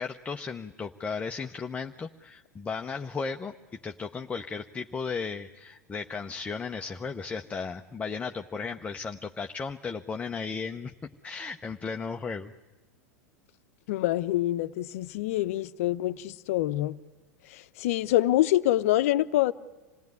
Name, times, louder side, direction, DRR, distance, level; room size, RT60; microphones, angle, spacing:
voice 1, 0.0-10.9 11.2-12.5, left 5 dB, 15° left, 0.8 m, -35 dB
voice 2, 13.9-17.0 17.5-19.5, left 14 dB, 65° left, 0.8 m, -26 dB
27.0 x 18.0 x 9.5 m
hypercardioid pair, 100°, 8 cm